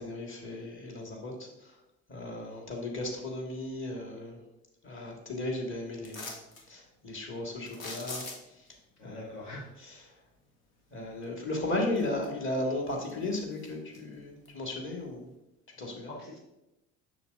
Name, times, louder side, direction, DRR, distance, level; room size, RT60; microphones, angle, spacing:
voice 1, 0.0-1.8 2.1-4.4 4.8-6.3 6.7-8.7 9.0-10.2 10.9-15.3 15.8-16.2, left 2 dB, 30° left, 0 dB, 1.8 m, -36 dB
sound 1, 6.0-6.7 7.7-8.7 11.2-11.3 11.8-12.5 12.9-14.0 14.5-14.6, left 3 dB, 85° left, 1.0 m, -42 dB
voice 2, 9.0-9.7 16.1-16.4, left 1 dB, 65° left, -2 dB, 1.3 m, -43 dB
6.9 x 6.4 x 2.6 m, 0.91 s
hypercardioid pair, 60°, 39 cm